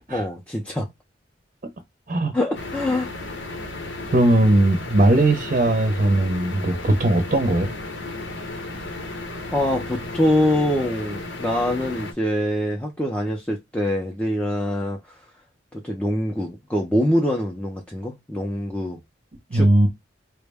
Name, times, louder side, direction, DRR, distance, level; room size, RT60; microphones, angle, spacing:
voice 1, 0.1-0.9 2.3-3.1 8.7-8.9 9.5-15.2 15.7-19.0 19.5-19.7, left 1 dB, 5° left, 0.5 m, -24 dB
sound 1, 2.5-12.1, left 2 dB, 75° left, 0.8 m, -34 dB
voice 2, 4.1-7.7 19.5-19.9, right 1 dB, 45° right, 0.6 m, -18 dB
4.4 x 2.1 x 3.3 m
head